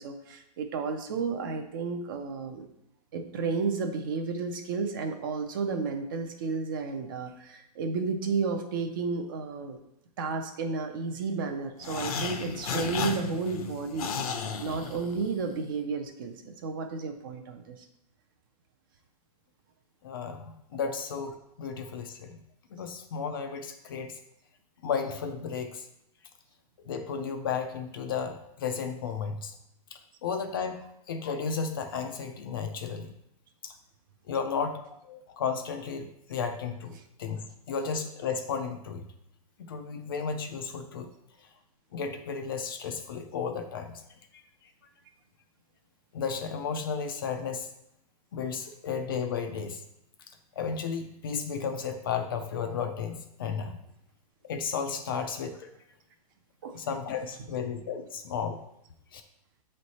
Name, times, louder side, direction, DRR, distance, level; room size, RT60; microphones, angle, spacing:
voice 1, 0.0-2.7 3.1-9.8 10.2-14.1 14.6-17.8 56.6-56.8, right 4 dB, 35° right, 5 dB, 0.5 m, -32 dB
sound 1, 11.8-15.5, left 5 dB, 65° left, 0.7 m, -34 dB
voice 2, 20.0-22.4 22.7-24.2 24.8-25.9 26.9-29.5 29.9-33.1 33.6-33.7 34.3-39.1 39.6-41.1 41.4-41.5 41.9-44.0 44.3-44.4 46.1-47.7 48.3-49.8 50.6-53.8 54.4-55.7 56.7-58.6 59.1-59.2, left 6 dB, 35° left, 6 dB, 0.4 m, -33 dB
7.5 x 3.2 x 4.1 m, 0.78 s
hypercardioid pair, 175°, 20 cm